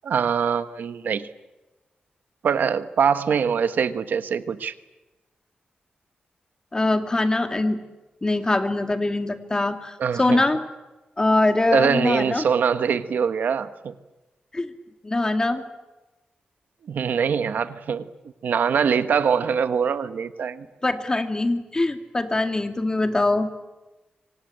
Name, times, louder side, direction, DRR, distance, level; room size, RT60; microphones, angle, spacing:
voice 1, 0.0-1.3 2.4-4.7 10.0-10.4 11.7-13.9 16.9-18.1 18.4-20.7, right 7 dB, 80° right, 11 dB, 1.3 m, -23 dB
voice 2, 6.7-7.8 8.2-10.6 11.2-12.5 14.5-14.7 15.0-15.6 20.8-23.5, left 2 dB, 25° left, 7 dB, 2.3 m, -23 dB
26.0 x 24.5 x 8.9 m, 1.1 s
wide cardioid pair, 110°, 3 cm